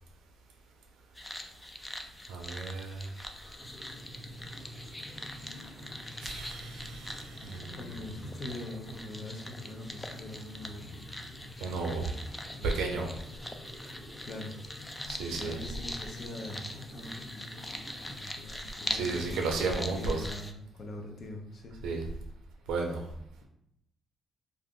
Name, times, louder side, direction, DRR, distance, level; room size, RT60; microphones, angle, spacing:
sound 1, 1.1-20.5, left 1 dB, 10° left, 0.3 m, -43 dB
voice 1, 2.3-3.1 6.2-8.0 11.6-12.1 12.6-13.1 15.1-15.6 18.9-20.3 21.8-22.0 22.7-23.0, right 3 dB, 90° right, 2 dB, 0.6 m, -33 dB
sound 2, 3.4-18.2, left 1 dB, 70° left, 1.0 m, -48 dB
voice 2, 7.7-11.1 12.5-12.7 14.2-14.5 15.3-17.3 18.1-21.8, left 1 dB, 50° left, 1 dB, 0.7 m, -43 dB
2.5 x 2.5 x 3.6 m, 0.76 s
cardioid pair, 90°, 0 cm